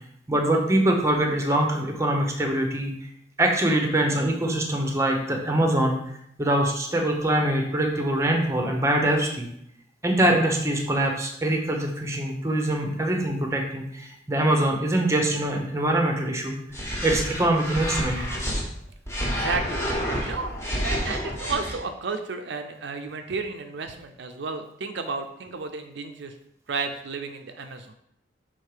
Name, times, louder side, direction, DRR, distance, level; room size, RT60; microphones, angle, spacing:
voice 1, 0.3-2.9 3.4-6.0 6.4-9.5 10.0-16.6 17.0-18.3, right 1 dB, 15° right, 2 dB, 0.9 m, -23 dB
sound 1, 16.7-18.6 19.1-21.8, equal, 15° left, 1.5 m, -29 dB
voice 2, 19.2-19.9 20.3-20.5 20.8-26.3 26.7-27.9, right 4 dB, 70° right, 6 dB, 0.5 m, -32 dB
6.4 x 3.7 x 4.9 m, 0.73 s
head